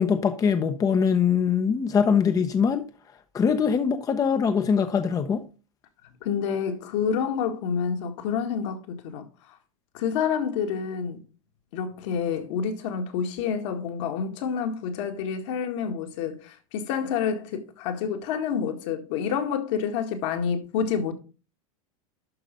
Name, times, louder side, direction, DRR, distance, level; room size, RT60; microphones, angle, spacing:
voice 1, 0.0-2.9 3.3-5.4, left 6 dB, 20° left, 0.7 m, -22 dB
voice 2, 6.0-9.3 9.9-11.2 11.7-21.1, left 7 dB, 60° left, 1.9 m, -28 dB
11.5 x 4.0 x 5.2 m
supercardioid pair, 125°, 17 cm